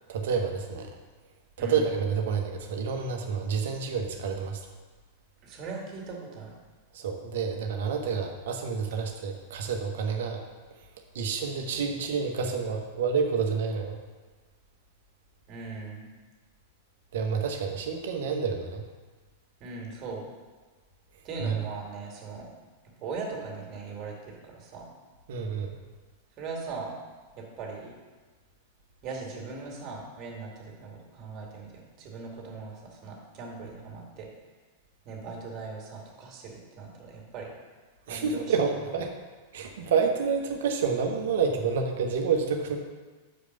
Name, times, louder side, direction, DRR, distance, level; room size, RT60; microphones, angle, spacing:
voice 1, 0.1-0.9 1.6-4.6 6.9-10.4 11.1-14.0 17.1-18.8 21.4-21.5 25.3-25.7 38.1-39.1 39.5-42.8, right 5 dB, 60° right, 3 dB, 1.1 m, -29 dB
voice 2, 5.4-6.5 15.5-16.1 19.6-20.3 21.2-22.4 23.0-24.9 26.4-26.9 27.4-28.0 29.0-31.7 32.0-34.3 35.0-37.5 38.1-38.5, right 4 dB, 35° right, -1 dB, 2.2 m, -39 dB
6.5 x 5.0 x 6.6 m, 1.4 s
figure-of-eight pair, 95°, 0 cm